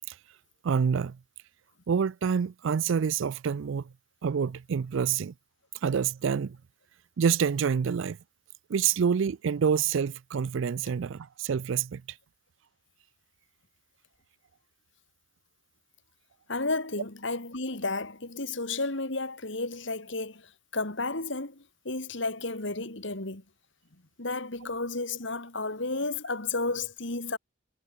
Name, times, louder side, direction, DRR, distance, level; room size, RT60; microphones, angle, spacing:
voice 1, 0.6-1.2 1.9-3.8 4.2-5.3 5.8-6.6 7.2-8.2 8.7-12.0, right 7 dB, 65° right, 0.4 m, -27 dB
voice 2, 16.5-23.4 24.2-27.4, left 3 dB, 60° left, 2.6 m, -32 dB
head